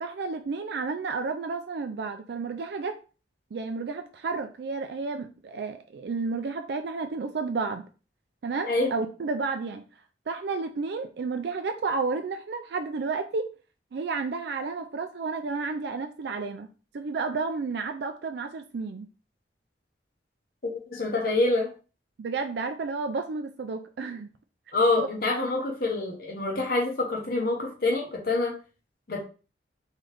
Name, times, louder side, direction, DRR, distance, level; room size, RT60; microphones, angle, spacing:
voice 1, 0.0-3.0 3.5-7.8 8.4-9.8 10.3-13.5 13.9-16.7 16.9-19.1 22.2-24.3 25.0-25.1 25.6-25.7, right 4 dB, 65° right, 6 dB, 0.4 m, -31 dB
voice 2, 20.9-21.7 24.7-28.5 29.1-29.2, left 2 dB, 50° left, 0 dB, 0.9 m, -26 dB
3.8 x 3.2 x 3.2 m, 0.35 s
head